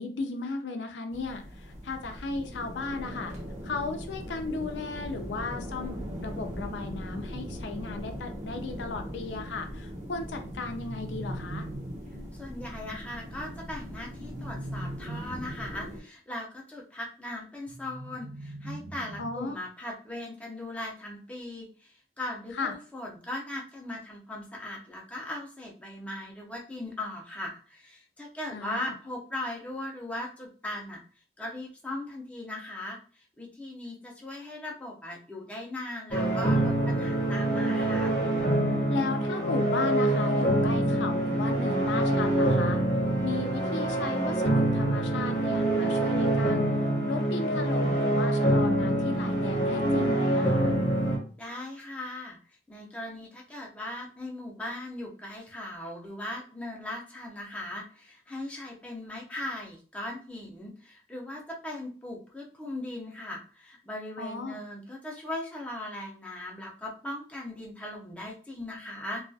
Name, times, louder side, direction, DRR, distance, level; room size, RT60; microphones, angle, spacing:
voice 1, 0.0-3.3 3.6-11.7 19.2-19.5 22.5-22.7 28.5-28.9 38.9-42.8 43.2-46.7 47.1-50.7 64.2-64.6, left 3 dB, 90° left, 6 dB, 0.4 m, -35 dB
sound 1, 1.1-16.0, equal, 45° right, 0.7 m, -40 dB
sound 2, 10.3-12.3 14.0-15.9 17.7-19.6, right 1 dB, 75° right, 0.5 m, -41 dB
voice 2, 12.3-31.0 31.4-38.1 51.4-52.4 52.7-69.3, left 1 dB, 10° left, -2 dB, 0.4 m, -39 dB
sound 3, 36.1-51.2, right 1 dB, 45° left, 0.8 m, -25 dB
2.3 x 2.2 x 2.6 m, 0.40 s
head